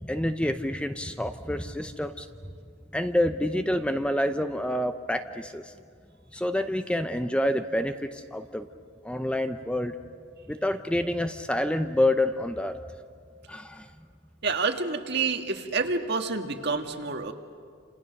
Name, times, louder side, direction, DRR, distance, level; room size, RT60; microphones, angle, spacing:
voice 1, 0.0-2.3 2.9-5.7 6.3-8.7 9.0-9.9 10.5-12.8 13.5-13.9, left 1 dB, 5° left, 8 dB, 0.6 m, -28 dB
voice 2, 14.4-17.3, right 4 dB, 55° right, 5 dB, 1.7 m, -28 dB
29.0 x 27.5 x 6.5 m, 2.3 s
head